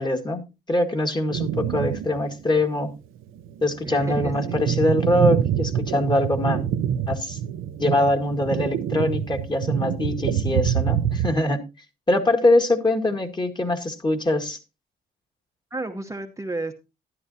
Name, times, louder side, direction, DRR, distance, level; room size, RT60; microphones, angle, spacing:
voice 1, 0.0-3.0 3.6-6.6 7.1-7.4 7.8-11.7 12.1-14.6, left 1 dB, 20° left, 4 dB, 2.0 m, -23 dB
sound 1, 1.3-2.2 2.6-2.7 3.4-11.3, right 9 dB, 85° right, 0.9 m, -26 dB
voice 2, 3.8-4.6 15.7-16.7, right 2 dB, 15° right, 4 dB, 1.0 m, -31 dB
12.5 x 11.0 x 2.8 m, 0.27 s
cardioid pair, 90°, 20 cm